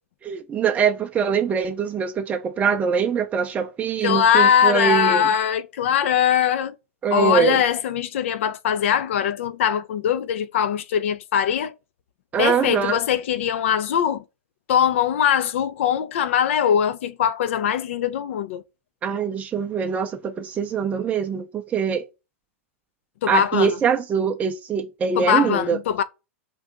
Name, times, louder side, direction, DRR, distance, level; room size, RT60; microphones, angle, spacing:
voice 1, 0.2-5.2 7.0-7.6 12.3-13.0 19.0-22.1 23.3-25.8, right 7 dB, 20° right, 0.4 m, -23 dB
voice 2, 4.0-6.7 7.1-11.7 12.4-14.2 14.7-18.6 23.2-23.8 25.2-26.0, left 9 dB, 65° left, 0.4 m, -21 dB
2.7 x 2.2 x 3.5 m
hypercardioid pair, 105°, 7 cm